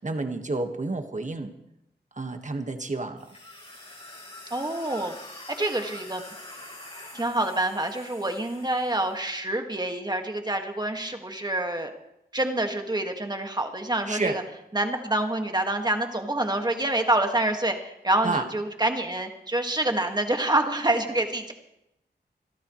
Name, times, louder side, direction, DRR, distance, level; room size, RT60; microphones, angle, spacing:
voice 1, 0.0-1.5 2.1-3.3 14.1-14.4 18.2-18.4, right 3 dB, 40° right, 6 dB, 1.6 m, -30 dB
sound 1, 3.2-9.1, left 1 dB, 35° left, 3.8 m, -45 dB
voice 2, 4.5-5.2 5.6-6.2 7.1-11.9 12.3-14.4 14.7-21.5, right 1 dB, 25° right, 4 dB, 1.9 m, -27 dB
26.0 x 13.0 x 3.2 m, 0.85 s
wide cardioid pair, 70°, 18 cm